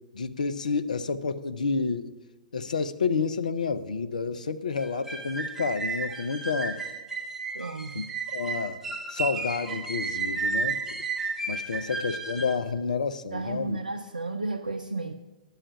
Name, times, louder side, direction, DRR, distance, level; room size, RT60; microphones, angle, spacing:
voice 1, 0.1-2.1 2.5-6.8 7.9-8.0 8.3-8.8 9.1-10.8 11.5-13.8, left 5 dB, 70° left, 0.6 m, -29 dB
sound 1, 4.8-12.6, right 4 dB, 10° right, 1.1 m, -33 dB
voice 2, 7.5-8.0 11.7-11.8 13.3-15.1, right 3 dB, 75° right, 0.5 m, -33 dB
10.0 x 5.6 x 8.3 m
figure-of-eight pair, 105°, 4 cm